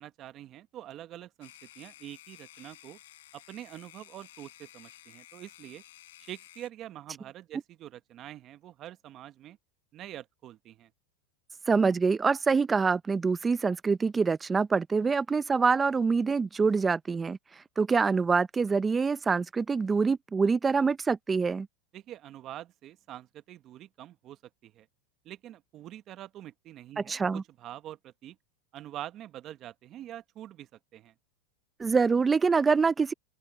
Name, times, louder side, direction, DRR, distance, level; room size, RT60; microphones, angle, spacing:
voice 1, 0.0-3.0 3.3-5.8 6.2-9.6 9.9-10.9 21.9-24.9 25.2-28.4 28.7-31.1, right 12 dB, 35° right, 1.0 m, -45 dB
sound 1, 1.4-6.7, left 14 dB, 80° left, 7.2 m, -53 dB
voice 2, 11.7-17.4 17.8-21.7 27.0-27.4 31.8-33.1, right 5 dB, 15° right, 0.6 m, -25 dB
open air
supercardioid pair, 130°, 0 cm